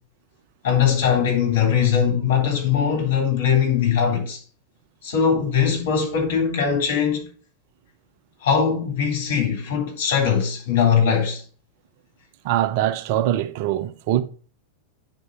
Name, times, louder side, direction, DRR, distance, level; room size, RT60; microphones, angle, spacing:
voice 1, 0.6-4.4 5.0-7.3 8.4-11.4, left 7 dB, 55° left, 3.4 m, -21 dB
voice 2, 12.4-14.2, right 12 dB, 50° right, 0.6 m, -22 dB
9.3 x 4.9 x 5.4 m
figure-of-eight pair, 90°, 0 cm